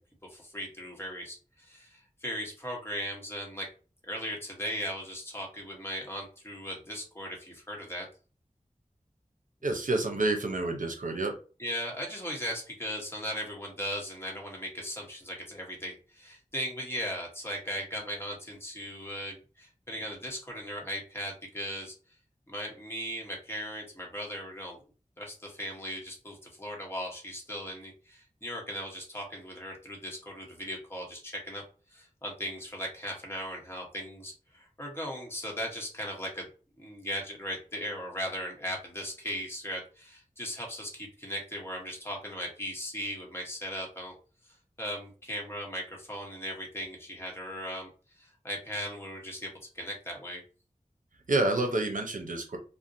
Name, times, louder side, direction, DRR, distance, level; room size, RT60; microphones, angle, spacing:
voice 1, 0.3-3.7 4.0-8.1 11.6-21.9 22.5-24.8 25.2-31.6 31.9-36.5 36.8-44.1 44.8-47.9 48.2-50.4, equal, 15° left, -1 dB, 0.9 m, -38 dB
voice 2, 9.6-11.3 51.3-52.6, right 2 dB, 75° right, 3 dB, 0.6 m, -28 dB
2.6 x 2.0 x 2.5 m, 0.36 s
wide cardioid pair, 40°, 14 cm